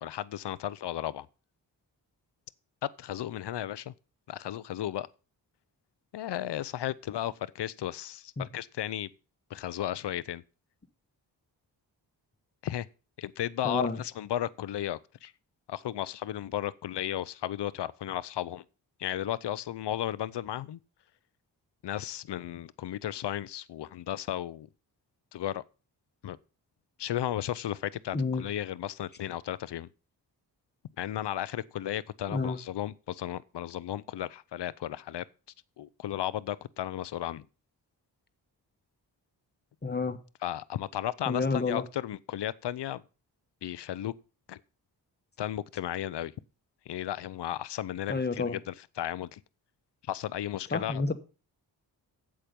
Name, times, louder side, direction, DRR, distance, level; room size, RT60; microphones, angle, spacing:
voice 1, 0.0-1.3 3.0-3.9 4.3-5.1 6.1-9.1 9.5-10.4 12.6-12.9 13.2-15.3 15.7-18.6 19.0-20.8 21.8-24.7 25.3-25.6 26.2-26.4 27.0-29.9 31.0-35.2 35.8-37.4 40.4-43.0 43.6-44.1 44.5-44.6 45.4-46.3 46.9-49.4 50.1-51.0, left 12 dB, 65° left, 0.7 m, -34 dB
voice 2, 13.6-14.0 28.1-28.4 32.3-32.6 39.8-40.2 41.3-41.8 48.1-48.6 50.7-51.1, left 4 dB, 20° left, 1.3 m, -29 dB
8.6 x 7.8 x 5.3 m
supercardioid pair, 45°, 44 cm